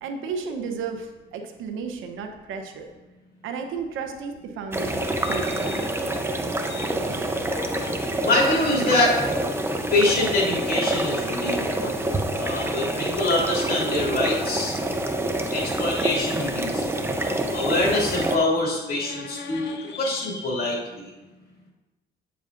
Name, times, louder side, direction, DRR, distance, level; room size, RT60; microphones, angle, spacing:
voice 1, 0.0-2.9 3.4-5.7 7.0-7.3 11.9-12.3, right 5 dB, 85° right, 5 dB, 0.9 m, -34 dB
sound 1, 4.7-18.4, right 1 dB, 10° right, 0.7 m, -27 dB
sound 2, 5.2-5.9 6.4-6.9 7.4-7.9 8.3-8.9 15.8-16.1 18.8-20.4, left 5 dB, 65° left, 0.9 m, -40 dB
voice 2, 8.2-9.1 9.9-12.1 12.4-14.7 15.5-19.7 20.0-21.0, left 2 dB, 50° left, -3 dB, 2.4 m, -25 dB
8.2 x 7.1 x 2.5 m, 1.1 s
cardioid pair, 90°, 20 cm